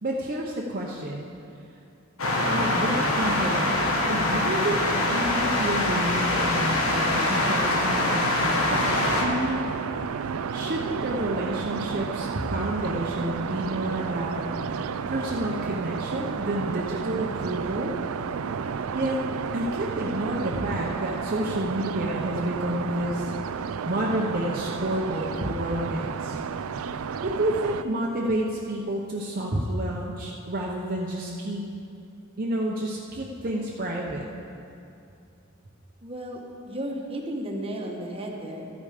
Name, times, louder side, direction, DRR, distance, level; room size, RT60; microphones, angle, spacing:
voice 1, 0.0-1.3 2.5-3.8 4.1-8.8 9.2-9.7 10.5-14.5 15.1-17.9 18.9-19.2 19.5-23.3 23.8-26.4 27.2-31.6 32.4-34.2, right 1 dB, 45° right, -3 dB, 0.8 m, -29 dB
sound 1, 2.2-9.2, left 1 dB, 80° left, 1.5 m, -24 dB
sound 2, 8.7-27.8, right 6 dB, 85° right, 0.4 m, -32 dB
voice 2, 36.0-36.4 36.7-38.7, right 1 dB, 30° right, 0 dB, 1.2 m, -33 dB
13.0 x 8.8 x 5.0 m, 2.6 s
head